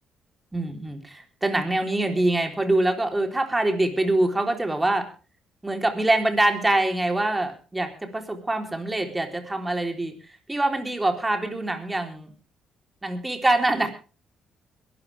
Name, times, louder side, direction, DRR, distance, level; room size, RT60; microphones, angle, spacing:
voice 1, 0.5-5.1 5.6-10.1 10.5-12.3 13.0-13.9, right 2 dB, 15° right, 5 dB, 3.9 m, -24 dB
22.5 x 13.0 x 3.5 m, 0.34 s
cardioid pair, 90°, 0 cm